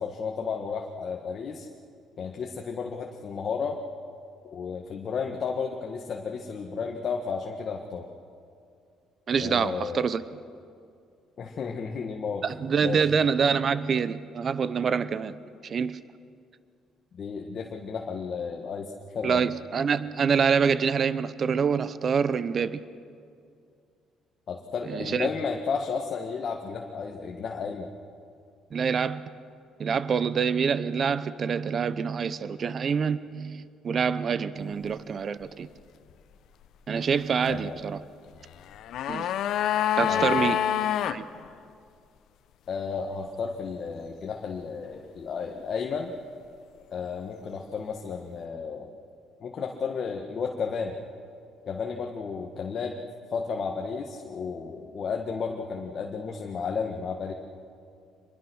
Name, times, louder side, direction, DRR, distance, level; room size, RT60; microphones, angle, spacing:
voice 1, 0.0-1.7 2.2-3.8 4.5-8.1 9.4-10.1 11.4-12.4 12.8-13.0 17.1-19.4 24.5-27.9 37.5-37.8 40.1-40.5 42.7-46.1 46.9-48.9 49.4-51.0 51.6-52.9 53.3-57.3, left 5 dB, 40° left, 1 dB, 1.5 m, -33 dB
voice 2, 9.3-10.4 12.4-15.4 15.6-16.0 19.2-22.8 24.9-25.3 28.7-29.2 29.8-35.7 36.9-38.0 39.1-39.3 40.0-40.6 41.0-41.2, right 6 dB, 35° right, 15 dB, 0.8 m, -26 dB
sound 1, 38.6-41.2 41.5-41.6, left 10 dB, 65° left, 0.8 m, -26 dB
25.0 x 22.0 x 6.3 m, 2.4 s
cardioid pair, 145°, 0 cm